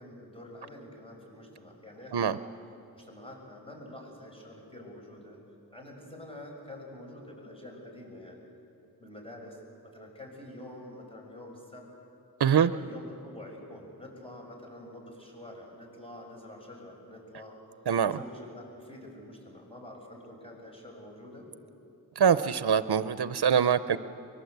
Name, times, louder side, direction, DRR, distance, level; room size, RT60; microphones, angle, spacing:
voice 1, 0.0-2.4 2.9-5.4 5.7-8.4 9.0-11.8 12.7-17.6 18.2-21.5, left 1 dB, 15° left, 0 dB, 6.5 m, -47 dB
voice 2, 12.4-12.7 17.9-18.2 22.2-24.0, right 7 dB, 80° right, 12 dB, 0.7 m, -24 dB
24.0 x 22.0 x 8.0 m, 2.7 s
wide cardioid pair, 45°, 39 cm